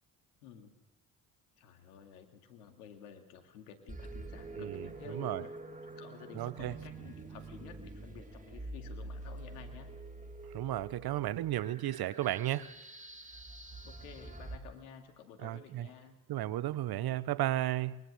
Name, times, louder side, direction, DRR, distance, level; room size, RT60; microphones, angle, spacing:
voice 1, 0.4-0.7 1.6-5.5 5.8-9.9 13.8-16.2, left 7 dB, 85° left, 2.3 m, -52 dB
sound 1, 3.9-14.6, right 2 dB, 15° right, 3.1 m, -46 dB
voice 2, 6.4-6.7 10.5-12.7 15.4-15.9 16.3-18.0, right 14 dB, 55° right, 1.0 m, -33 dB
22.5 x 20.5 x 6.6 m
hypercardioid pair, 50°, 44 cm